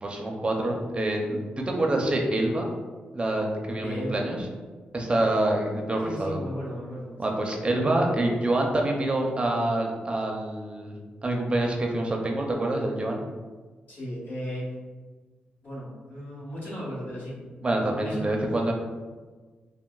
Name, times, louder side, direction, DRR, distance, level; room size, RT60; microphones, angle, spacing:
voice 1, 0.0-2.7 3.1-4.4 4.9-6.4 7.2-10.9 11.2-13.2 17.6-18.7, right 1 dB, 30° right, 0 dB, 0.5 m, -26 dB
voice 2, 3.8-4.4 6.0-7.4 13.9-14.7 15.6-18.4, equal, 60° left, -6 dB, 1.4 m, -36 dB
3.8 x 2.0 x 2.3 m, 1.4 s
cardioid pair, 70°, 3 cm